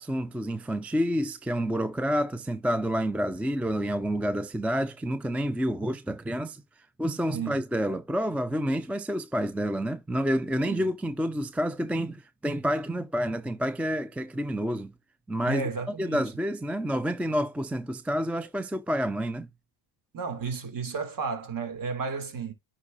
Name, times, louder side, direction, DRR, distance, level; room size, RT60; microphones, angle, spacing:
voice 1, 0.0-6.6 7.0-14.9 15.3-15.7 16.0-19.5, equal, 5° right, 0.4 m, -29 dB
voice 2, 15.5-16.2 20.1-22.5, right 5 dB, 40° right, 2.6 m, -33 dB
9.7 x 4.3 x 2.6 m
supercardioid pair, 95°, 49 cm